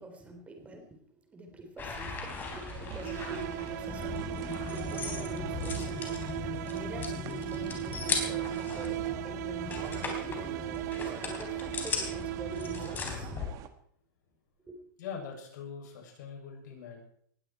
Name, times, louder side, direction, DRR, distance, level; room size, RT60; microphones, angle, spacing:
voice 1, 0.0-10.4 11.0-13.3 14.7-14.8, right 1 dB, 10° right, 4 dB, 3.8 m, -45 dB
sound 1, 1.8-13.5, left 4 dB, 20° left, 3.9 m, -38 dB
sound 2, 2.5-13.7, right 9 dB, 35° right, 1.6 m, -46 dB
sound 3, 3.0-13.2, right 16 dB, 55° right, 0.6 m, -37 dB
voice 2, 15.0-17.0, left 6 dB, 65° left, 1 dB, 7.3 m, -42 dB
20.0 x 16.0 x 4.5 m, 0.63 s
supercardioid pair, 150°, 11 cm